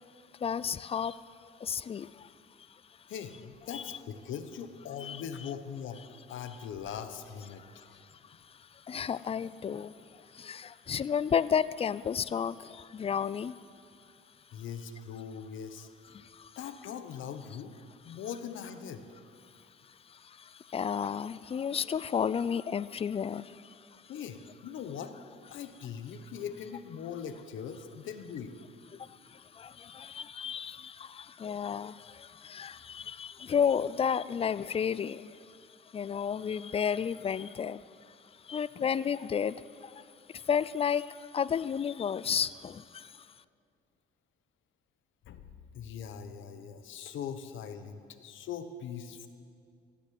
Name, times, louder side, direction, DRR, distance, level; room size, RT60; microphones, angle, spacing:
voice 1, 0.4-2.3 2.7-2.8 3.7-4.0 5.0-5.2 7.6-13.6 16.1-16.5 19.8-24.0 28.9-35.6 35.9-38.2 38.4-43.3, left 7 dB, 30° left, 18 dB, 0.4 m, -33 dB
voice 2, 3.1-6.0 6.3-7.9 14.5-15.9 16.6-17.8 18.0-19.0 24.1-25.1 25.5-28.6 45.3-45.5 45.7-49.3, left 7 dB, 75° left, 9 dB, 1.1 m, -41 dB
16.0 x 10.0 x 7.7 m, 2.4 s
cardioid pair, 90°, 20 cm